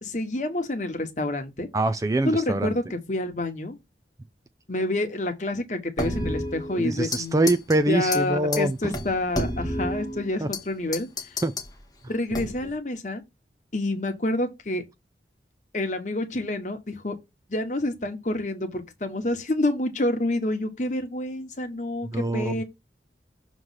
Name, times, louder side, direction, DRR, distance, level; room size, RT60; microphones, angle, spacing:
voice 1, 0.0-1.7 2.2-3.8 4.7-7.4 7.9-11.1 12.1-13.2 13.7-14.8 15.7-17.2 17.5-22.6, left 1 dB, 45° left, 1.1 m, -28 dB
voice 2, 1.7-2.7 6.8-8.9 10.4-10.5 11.4-11.5 22.1-22.6, right 2 dB, 20° right, 0.3 m, -24 dB
sound 1, 6.0-7.2 7.5-7.8 8.1-8.2 8.5-8.6 8.9-10.6 10.9-11.7 12.3-12.8, left 1 dB, 20° left, 1.1 m, -30 dB
6.4 x 3.1 x 5.6 m
head